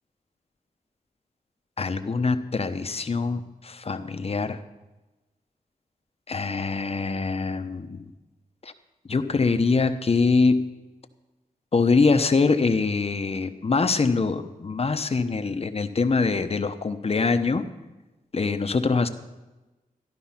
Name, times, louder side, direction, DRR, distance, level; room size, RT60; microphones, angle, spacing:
voice 1, 1.8-4.6 6.3-8.0 8.6-8.7 9.1-10.7 11.7-17.6 18.3-19.1, left 4 dB, 40° left, 9 dB, 0.9 m, -24 dB
14.0 x 11.5 x 5.8 m, 1.1 s
wide cardioid pair, 105°, 15 cm